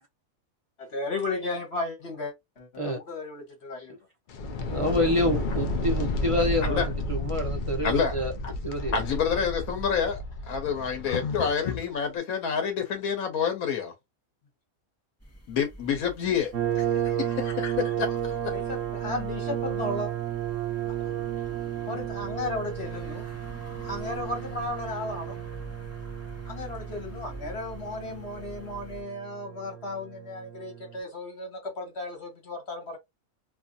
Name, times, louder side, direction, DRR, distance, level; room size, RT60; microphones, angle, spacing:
voice 1, 0.8-4.0 18.5-20.1 21.9-23.3 23.8-25.4 26.5-33.0, left 2 dB, 50° left, 1.4 m, -35 dB
sound 1, 4.3-11.9, left 2 dB, 65° left, 0.5 m, -31 dB
voice 2, 4.7-8.3 8.6-9.0, left 1 dB, 40° right, 0.5 m, -27 dB
voice 3, 7.8-8.2 8.4-8.5 8.9-13.9 15.5-16.5 17.0-18.5, left 7 dB, 85° left, 1.2 m, -28 dB
sound 2, 15.2-29.0, equal, 15° left, 0.6 m, -46 dB
sound 3, 16.5-31.0, right 11 dB, 70° right, 1.1 m, -33 dB
2.8 x 2.6 x 2.3 m
omnidirectional pair, 1.5 m